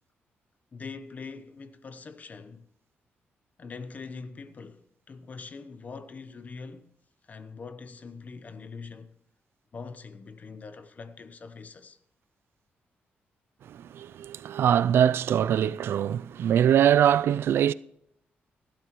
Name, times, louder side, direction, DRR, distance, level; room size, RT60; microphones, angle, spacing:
voice 1, 0.7-2.7 3.6-6.9 7.3-9.2 9.7-12.0, left 4 dB, 40° left, 0.9 m, -43 dB
voice 2, 13.7-17.7, right 9 dB, 75° right, 0.3 m, -23 dB
16.5 x 11.5 x 3.1 m
cardioid pair, 115°, 4 cm